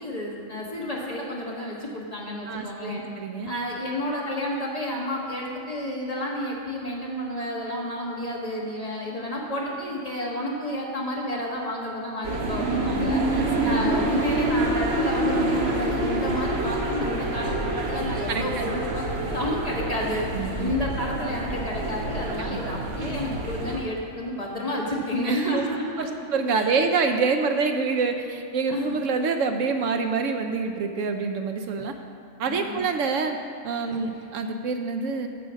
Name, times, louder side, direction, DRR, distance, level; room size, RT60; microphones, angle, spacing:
voice 1, 0.0-3.0 3.4-13.2 13.6-20.3 20.6-26.1 26.5-26.8 28.7-29.0 32.4-32.8, left 1 dB, 30° left, -3 dB, 1.6 m, -30 dB
voice 2, 2.5-3.5 13.3-14.0 18.3-18.8 20.3-20.7 25.2-25.7 26.0-31.9 32.4-33.4 33.6-35.3, right 4 dB, 75° right, 6 dB, 1.0 m, -26 dB
sound 1, 12.2-23.8, right 1 dB, 50° right, 1.4 m, -27 dB
7.9 x 7.7 x 6.2 m, 2.7 s
omnidirectional pair, 1.4 m